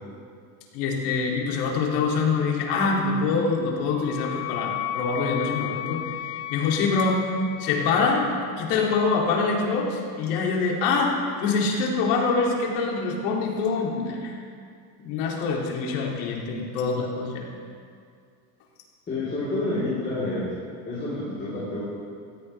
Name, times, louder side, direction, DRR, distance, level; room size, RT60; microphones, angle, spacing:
voice 1, 0.7-6.2 6.5-7.2 7.6-8.3 8.6-11.1 11.4-14.4 15.0-17.5, left 4 dB, 80° left, -1 dB, 2.7 m, -25 dB
Wind instrument woodwind instrument, 3.4-8.2, left 14 dB, 50° left, 0.7 m, -34 dB
voice 2, 19.1-20.4 20.9-21.8, left 2 dB, 20° left, -9 dB, 3.6 m, -28 dB
17.5 x 14.0 x 3.3 m, 2.3 s
cardioid pair, 165°, 45 cm